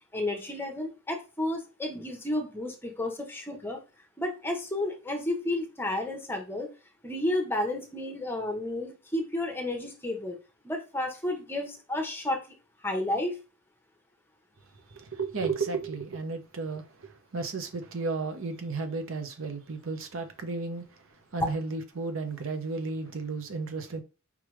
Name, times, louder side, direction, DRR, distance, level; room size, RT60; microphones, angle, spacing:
voice 1, 0.1-3.8 4.2-6.7 7.0-10.4 10.6-12.6 12.8-13.4, left 1 dB, 10° left, 1.0 m, -32 dB
voice 2, 14.9-24.0, right 4 dB, 70° right, 0.8 m, -34 dB
5.0 x 3.3 x 3.1 m
head